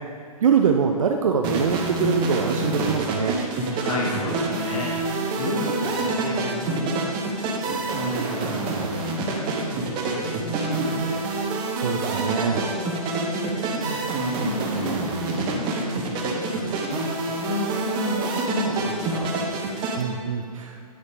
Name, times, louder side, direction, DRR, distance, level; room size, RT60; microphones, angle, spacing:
voice 1, 0.4-3.4 11.7-12.6 20.0-20.8, right 7 dB, 55° right, 3 dB, 0.7 m, -23 dB
sound 1, 1.4-20.0, right 3 dB, 25° right, 1.1 m, -27 dB
voice 2, 3.8-5.0 5.4-7.1 7.4-11.2 12.4-19.4, left 1 dB, 55° left, -4 dB, 2.1 m, -32 dB
9.6 x 6.4 x 5.0 m, 2.3 s
figure-of-eight pair, 125°, 20 cm